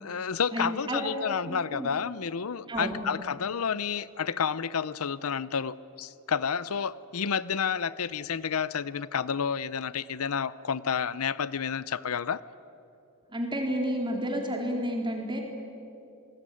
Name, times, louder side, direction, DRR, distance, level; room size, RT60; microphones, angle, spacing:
voice 1, 0.0-12.4, left 6 dB, 80° left, 18 dB, 0.7 m, -30 dB
voice 2, 0.5-1.0 1.4-1.9 2.7-3.0 13.3-15.4, equal, 20° right, 2 dB, 4.0 m, -31 dB
28.0 x 20.0 x 9.9 m, 2.7 s
head